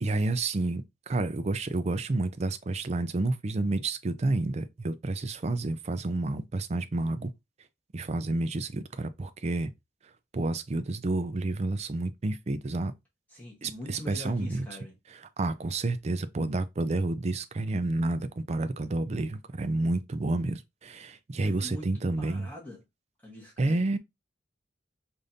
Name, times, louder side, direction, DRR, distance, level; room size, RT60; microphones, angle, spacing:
voice 1, 0.0-7.3 7.9-9.7 10.3-12.9 13.6-14.6 15.4-22.5 23.6-24.0, right 2 dB, 35° right, 0.4 m, -30 dB
voice 2, 13.3-15.0 21.4-22.8 23.2-23.9, left 1 dB, 10° left, 1.1 m, -43 dB
5.0 x 2.6 x 2.7 m
head